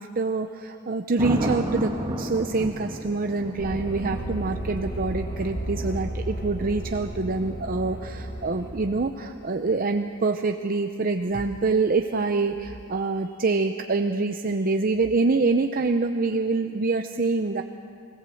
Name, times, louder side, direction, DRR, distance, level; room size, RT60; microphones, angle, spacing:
voice 1, 0.0-17.6, right 3 dB, 45° right, 6 dB, 0.6 m, -25 dB
Thunder, 1.2-9.2 11.9-12.3, right 1 dB, 20° right, 1.6 m, -34 dB
sound 1, 3.6-9.1, right 1 dB, 50° left, 1.8 m, -33 dB
24.0 x 17.0 x 7.8 m, 2.5 s
head